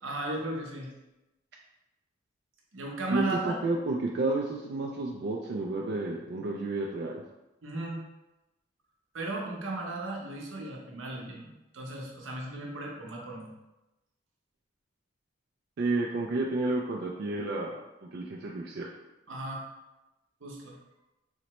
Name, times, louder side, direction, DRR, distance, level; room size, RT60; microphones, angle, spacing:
voice 1, 0.0-0.9 2.7-3.6 7.6-8.0 9.1-13.5 19.3-19.6 20.4-20.8, right 2 dB, 85° right, -1 dB, 0.7 m, -35 dB
voice 2, 3.1-7.2 15.8-17.8 18.1-18.9, right 2 dB, 55° right, -1 dB, 0.3 m, -31 dB
4.0 x 2.1 x 2.9 m, 0.99 s
head